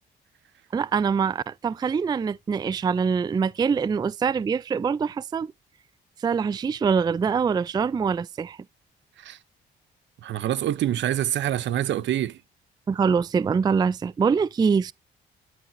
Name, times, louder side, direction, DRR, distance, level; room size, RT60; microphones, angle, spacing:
voice 1, 0.7-5.5 6.2-8.6 12.9-14.9, right 6 dB, 20° right, 0.3 m, -24 dB
voice 2, 10.2-12.4, right 12 dB, 65° right, 0.7 m, -26 dB
12.0 x 4.7 x 2.6 m
cardioid pair, 90°, 20 cm